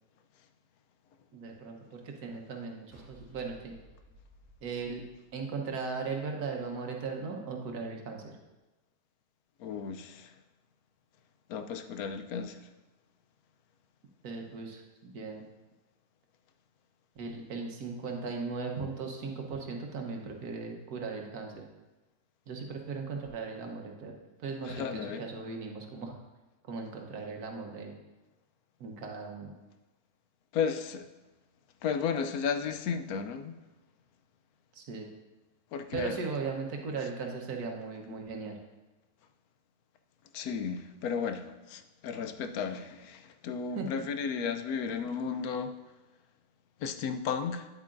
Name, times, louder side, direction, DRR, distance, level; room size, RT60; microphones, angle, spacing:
voice 1, 1.3-3.7 4.6-5.0 5.3-8.3 14.2-15.4 17.1-21.6 22.5-24.1 24.4-26.2 26.7-27.9 28.8-29.5 34.7-35.1 35.9-38.6 43.8-43.9, right 4 dB, 90° right, 2 dB, 1.5 m, -38 dB
sound 1, 2.9-6.1, equal, 10° left, 1.6 m, -58 dB
voice 2, 9.6-10.3 11.5-12.6 24.7-25.2 30.5-31.1 31.8-33.6 35.7-36.2 40.3-45.7 46.8-47.7, left 6 dB, 80° left, 8 dB, 1.1 m, -34 dB
9.5 x 8.4 x 2.5 m, 1.1 s
omnidirectional pair, 1.6 m